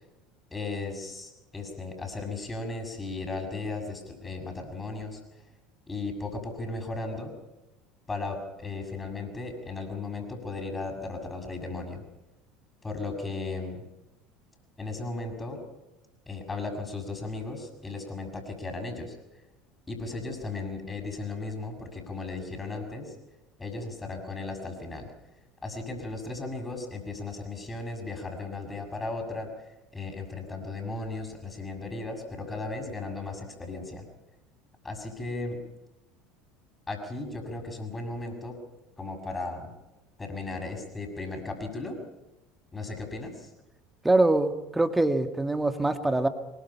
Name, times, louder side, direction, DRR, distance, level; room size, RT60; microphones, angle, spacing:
voice 1, 0.5-5.2 5.9-7.3 8.1-12.0 12.8-13.8 14.8-15.6 16.3-19.2 19.9-23.1 23.6-25.1 25.6-29.5 29.9-34.1 34.8-35.6 36.9-38.6 39.0-39.7 40.2-42.0 42.7-43.5, left 3 dB, 15° left, 5 dB, 6.7 m, -36 dB
voice 2, 44.0-46.3, right 2 dB, 10° right, 8 dB, 2.1 m, -24 dB
24.5 x 22.5 x 5.7 m, 0.99 s
figure-of-eight pair, 70°, 0 cm